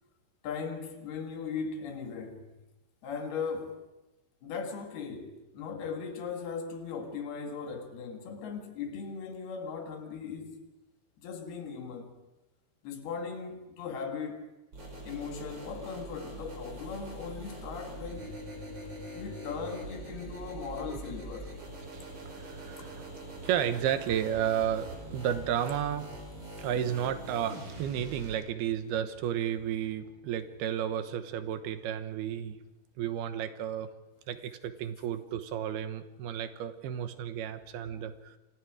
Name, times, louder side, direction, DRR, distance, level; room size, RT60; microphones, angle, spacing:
voice 1, 0.4-2.6 3.0-3.9 4.4-10.7 11.2-12.1 12.8-14.5 15.0-18.4 19.1-21.6 22.8-22.9 26.5-26.7, left 5 dB, 80° left, 3.9 m, -38 dB
sound 1, 14.7-28.3, right 1 dB, 25° right, 5.1 m, -43 dB
voice 2, 21.9-26.1 26.6-32.6 33.0-33.9 34.3-38.4, right 9 dB, 80° right, 3.1 m, -32 dB
28.5 x 24.5 x 4.9 m
omnidirectional pair, 4.5 m